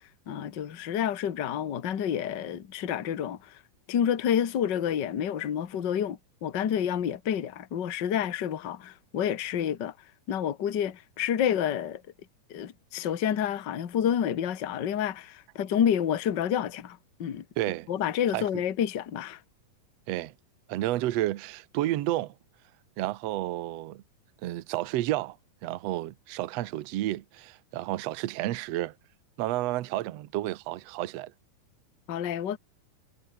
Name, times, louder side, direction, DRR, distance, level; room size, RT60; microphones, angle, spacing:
voice 1, 0.3-3.5 3.9-9.9 10.3-12.0 12.5-17.4 17.9-19.4 32.1-32.6, left 9 dB, 45° left, 1.6 m, -29 dB
voice 2, 17.6-17.9 18.3-18.5 20.1-20.3 20.7-22.3 23.0-24.0 24.4-25.4 25.6-28.9 29.4-31.3, right 15 dB, 70° right, 1.6 m, -31 dB
omnidirectional pair, 4.0 m